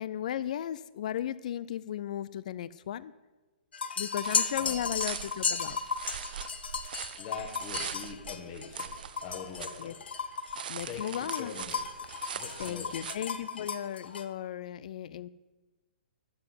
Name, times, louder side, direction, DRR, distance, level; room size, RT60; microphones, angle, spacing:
voice 1, 0.0-3.1 4.0-5.8 9.8-9.9 10.7-11.5 12.3-15.3, left 10 dB, 45° left, 18 dB, 0.4 m, -36 dB
sound 1, 3.7-14.2, left 6 dB, 90° left, 1.4 m, -34 dB
sound 2, 4.2-9.9 10.2-13.2, right 9 dB, 60° right, 0.7 m, -42 dB
voice 2, 4.5-4.9 7.2-10.1 10.9-11.9 12.3-13.0, left 6 dB, 25° left, 1 dB, 1.3 m, -43 dB
12.0 x 7.8 x 9.6 m, 1.2 s
hypercardioid pair, 165°, 5 cm